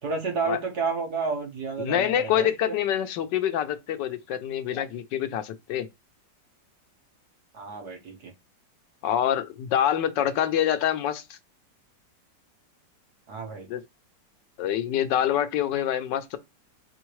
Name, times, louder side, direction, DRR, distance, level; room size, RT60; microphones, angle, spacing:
voice 1, 0.0-2.7 7.5-8.3 13.3-13.7, right 4 dB, 65° right, 1.8 m, -31 dB
voice 2, 1.8-5.9 9.0-11.4 13.7-13.8 14.6-16.4, left 10 dB, 80° left, 1.3 m, -26 dB
4.8 x 3.5 x 3.1 m
omnidirectional pair, 1.9 m